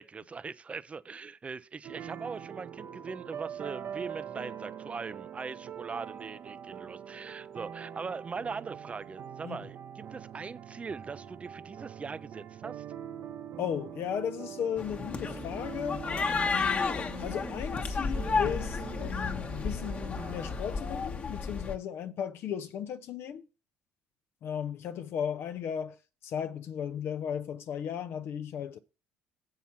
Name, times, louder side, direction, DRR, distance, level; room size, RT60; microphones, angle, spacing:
voice 1, 0.0-12.8, right 5 dB, 30° right, 0.5 m, -41 dB
sound 1, 1.8-21.1, right 9 dB, 55° right, 0.8 m, -44 dB
voice 2, 13.6-16.1 16.4-16.9 17.2-23.5 24.4-26.0 26.2-28.8, left 8 dB, 60° left, 0.6 m, -35 dB
sound 2, 14.8-21.8, left 4 dB, 35° left, 1.1 m, -32 dB
7.1 x 5.7 x 5.8 m
supercardioid pair, 70°, 5 cm